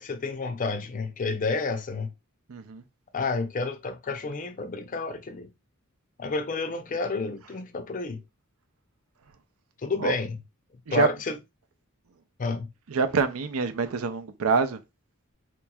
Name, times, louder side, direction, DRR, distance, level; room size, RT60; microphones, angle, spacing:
voice 1, 0.0-2.1 3.1-5.5 6.2-8.2 9.8-10.4 10.9-11.4 12.4-12.7, left 3 dB, 40° left, 0.5 m, -30 dB
voice 2, 2.5-2.8 10.0-10.1 10.9-11.1 12.9-14.8, right 5 dB, 80° right, 0.5 m, -25 dB
4.4 x 2.9 x 2.3 m
head